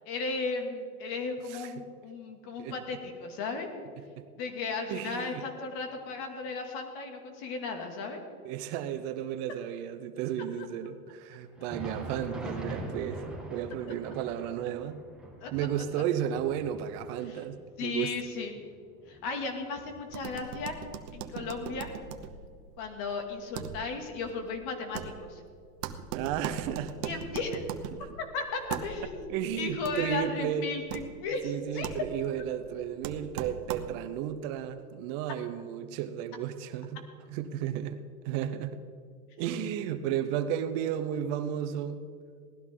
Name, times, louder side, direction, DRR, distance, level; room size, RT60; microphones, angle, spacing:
voice 1, 0.0-3.7 4.4-8.2 10.6-10.7 15.4-15.7 17.3-17.4 17.8-18.5 19.1-20.7 21.1-21.9 22.8-25.4 27.0-27.6 28.3-31.9, left 4 dB, 55° left, 4 dB, 2.5 m, -35 dB
voice 2, 4.9-5.4 8.4-13.2 13.5-15.0 15.5-18.1 26.1-26.9 28.0-28.1 29.3-30.7 31.4-37.0 37.3-38.8 39.4-42.0, right 10 dB, 55° right, 10 dB, 1.0 m, -33 dB
Thunder, 11.5-20.9 21.2-21.4 22.1-22.3 23.3-23.4, right 1 dB, ahead, 1.8 m, -44 dB
sound 1, 20.1-34.2, right 8 dB, 90° right, 1.1 m, -41 dB
18.0 x 13.0 x 3.8 m, 2.2 s
supercardioid pair, 125°, 46 cm